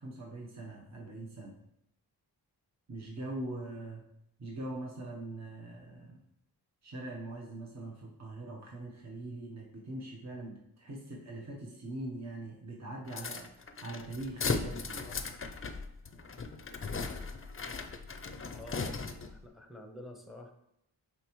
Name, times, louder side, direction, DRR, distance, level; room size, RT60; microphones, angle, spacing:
voice 1, 0.0-1.6 2.9-4.0 4.4-6.2 6.8-13.5 13.8-15.2, right 2 dB, 40° right, -2 dB, 1.0 m, -42 dB
sound 1, 13.1-19.4, left 4 dB, 35° left, 0.5 m, -37 dB
voice 2, 18.5-20.5, left 1 dB, ahead, 4 dB, 0.8 m, -49 dB
6.9 x 4.6 x 3.1 m, 0.79 s
wide cardioid pair, 95°, 40 cm